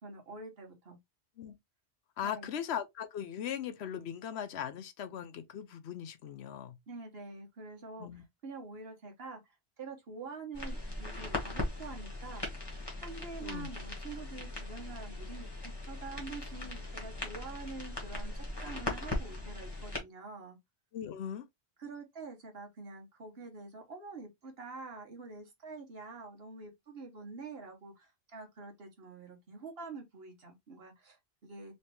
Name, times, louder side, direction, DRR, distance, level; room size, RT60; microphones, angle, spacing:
voice 1, 0.0-1.0 2.2-2.5 6.9-12.5 13.0-20.6 21.8-31.8, right 3 dB, 65° right, 1.4 m, -46 dB
voice 2, 2.2-6.8 8.0-8.2 13.4-13.7 20.9-21.5, left 9 dB, 75° left, 0.9 m, -39 dB
sound 1, 10.5-20.0, left 2 dB, 25° left, 1.3 m, -39 dB
3.3 x 3.1 x 2.9 m
omnidirectional pair, 1.1 m